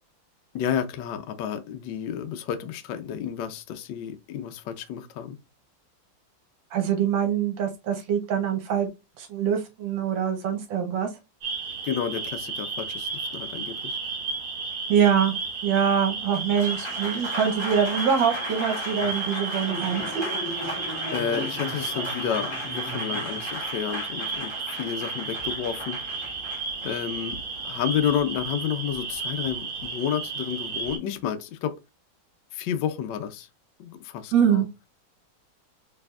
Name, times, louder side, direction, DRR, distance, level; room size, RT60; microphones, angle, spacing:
voice 1, 0.5-5.4 11.8-14.0 21.1-26.2 26.8-31.7 32.5-33.5 33.8-34.6, left 9 dB, 70° left, 1.2 m, -31 dB
voice 2, 6.7-8.9 9.2-11.1 14.9-15.3 15.6-20.3 34.3-34.7, right 8 dB, 75° right, 1.5 m, -24 dB
sound 1, 11.4-31.0, right 4 dB, 50° right, 1.3 m, -33 dB
Applause, 16.2-28.4, left 1 dB, 20° left, 0.7 m, -36 dB
4.5 x 3.4 x 2.3 m
omnidirectional pair, 2.1 m